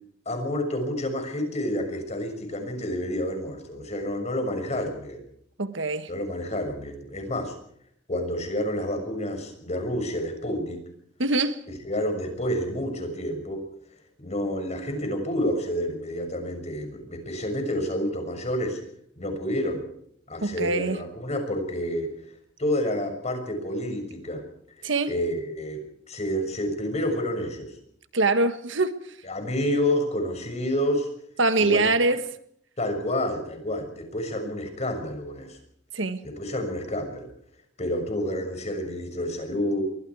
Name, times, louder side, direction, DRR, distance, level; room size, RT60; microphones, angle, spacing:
voice 1, 0.2-5.2 6.1-7.5 8.1-10.8 11.8-13.6 14.2-18.8 19.2-19.8 20.3-22.1 22.6-24.4 25.1-27.7 29.2-31.1 31.6-31.8 32.8-35.6 36.2-37.3 37.8-39.8, left 1 dB, 35° left, 6.3 m, -29 dB
voice 2, 5.6-6.1 11.2-11.6 20.4-21.0 24.8-25.1 28.1-29.0 31.4-32.2 35.9-36.3, right 3 dB, 70° right, 1.5 m, -24 dB
28.5 x 23.5 x 4.8 m
head